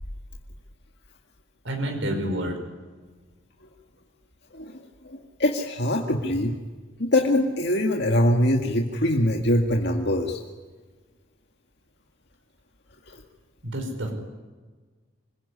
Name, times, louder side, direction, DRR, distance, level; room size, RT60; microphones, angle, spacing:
voice 1, 1.6-2.6 13.6-14.1, right 1 dB, 80° right, 3 dB, 5.0 m, -28 dB
voice 2, 5.4-6.5 7.0-10.4, left 1 dB, 60° left, 1 dB, 2.0 m, -23 dB
26.5 x 21.0 x 9.9 m, 1.4 s
head